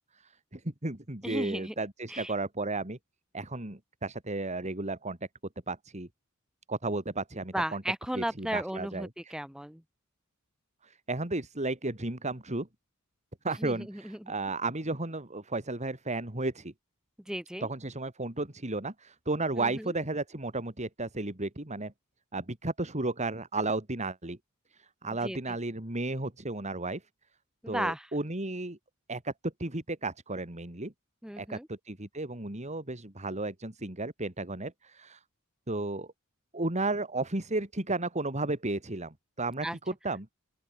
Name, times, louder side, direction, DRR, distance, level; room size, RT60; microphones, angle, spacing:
voice 1, 0.5-3.0 3.3-5.2 5.7-6.1 6.7-7.8 8.1-9.4 10.8-12.7 13.4-16.7 17.6-21.9 22.3-24.4 25.0-27.0 27.7-28.8 29.1-30.9 31.4-35.2 35.7-36.1 36.5-40.3, right 2 dB, 35° right, 3.0 m, -33 dB
voice 2, 1.2-1.7 2.1-2.3 7.5-9.8 13.6-14.3 17.3-17.7 19.6-19.9 25.2-25.6 27.6-28.1 31.2-31.7 39.6-39.8, equal, 5° right, 1.2 m, -35 dB
open air
head